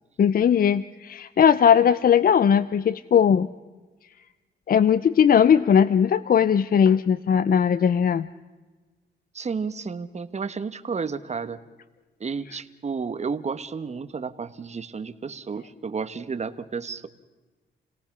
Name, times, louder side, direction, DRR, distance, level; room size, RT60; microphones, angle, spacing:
voice 1, 0.2-3.5 4.7-8.3, left 8 dB, 50° left, 16 dB, 0.6 m, -19 dB
voice 2, 9.3-11.6 12.2-17.1, right 5 dB, 35° right, 11 dB, 1.3 m, -32 dB
29.0 x 18.0 x 6.1 m, 1.2 s
cardioid pair, 100°, 19 cm